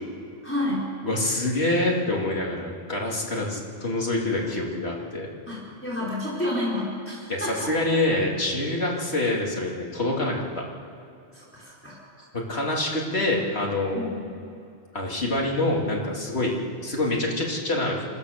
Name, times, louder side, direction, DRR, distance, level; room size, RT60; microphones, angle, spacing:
voice 1, 0.4-0.9 5.5-7.7 11.3-12.0 13.9-14.1, left 1 dB, 10° left, -7 dB, 4.8 m, -30 dB
voice 2, 1.0-5.3 7.3-10.4 12.5-14.2 14.9-16.5 16.8-18.0, left 2 dB, 75° left, -2 dB, 3.4 m, -26 dB
25.5 x 15.0 x 6.9 m, 2.6 s
omnidirectional pair, 1.1 m